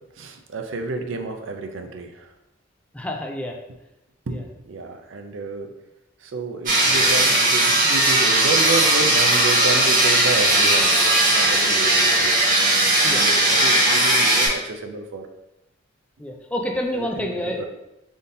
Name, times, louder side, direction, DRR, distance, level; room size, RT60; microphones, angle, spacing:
voice 1, 0.2-2.3 4.3-5.7 6.2-11.0 11.3-12.3 13.0-15.3 16.9-17.3 17.6-17.7, right 3 dB, 75° right, 5 dB, 0.5 m, -30 dB
voice 2, 2.9-3.6 4.3-4.4 13.0-13.2 16.2-17.7, left 1 dB, 5° left, 1 dB, 0.4 m, -28 dB
sound 1, 6.7-14.5, right 1 dB, 40° right, 1.4 m, -18 dB
3.9 x 3.6 x 2.7 m, 0.93 s
head